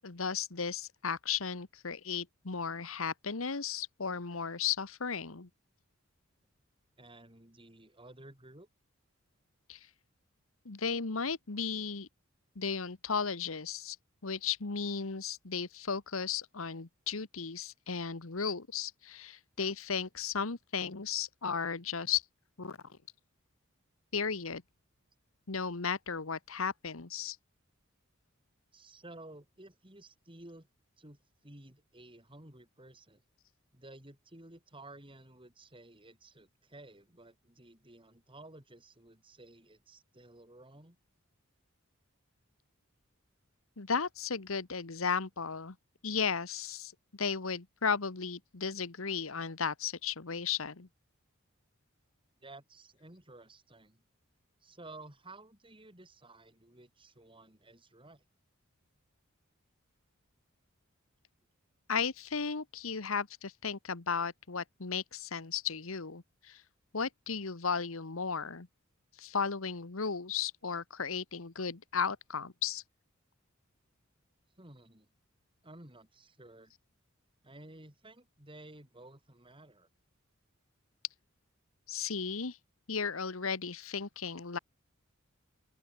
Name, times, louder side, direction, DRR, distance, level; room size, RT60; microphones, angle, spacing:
voice 1, 0.0-5.5 9.7-9.8 10.6-12.1 12.5-14.0 14.2-22.2 22.6-23.0 24.1-24.6 25.5-27.4 43.8-45.7 46.0-50.9 61.9-66.6 66.9-68.7 69.2-72.8 81.9-82.6 82.9-84.6, left 6 dB, 80° left, 1.3 m, -35 dB
voice 2, 7.0-8.7 28.7-30.7 31.0-33.2 33.7-41.0 52.4-54.0 54.6-58.2 74.6-75.1 75.6-76.7 77.4-79.9, right 2 dB, 25° right, 5.5 m, -54 dB
open air
head